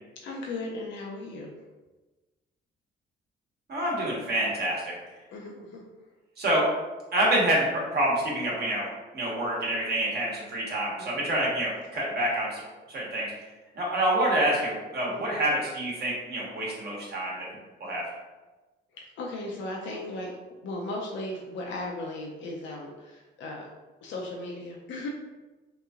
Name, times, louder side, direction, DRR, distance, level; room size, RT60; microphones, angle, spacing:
voice 1, 0.2-1.5 5.3-5.8 11.2-11.3 15.1-15.3 18.9-23.7 24.0-25.1, left 2 dB, 70° left, -2 dB, 0.5 m, -36 dB
voice 2, 3.7-4.9 6.4-6.6 7.1-8.9 9.1-12.6 12.9-13.3 13.7-17.4 17.8-18.0, right 1 dB, 55° right, -4 dB, 1.1 m, -27 dB
2.9 x 2.6 x 2.4 m, 1.2 s
cardioid pair, 90°, 20 cm